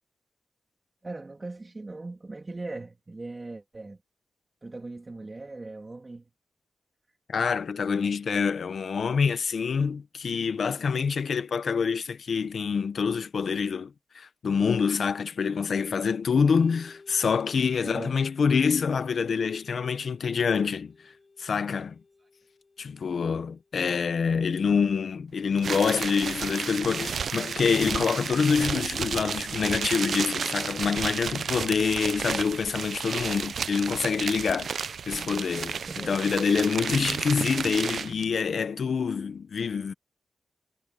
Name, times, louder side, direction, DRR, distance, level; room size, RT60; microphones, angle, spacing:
voice 1, 1.0-4.0 4.6-6.3 17.8-18.2 20.4-20.6 35.7-36.2, right 2 dB, 25° right, 3.1 m, -39 dB
voice 2, 7.3-21.1 21.4-22.0 22.8-39.9, left 6 dB, 65° left, 1.1 m, -26 dB
Organ, 16.4-23.9, left 4 dB, 35° left, 4.9 m, -56 dB
sound 1, 25.6-38.2, right 6 dB, 70° right, 0.5 m, -32 dB
wide cardioid pair, 135°, 0 cm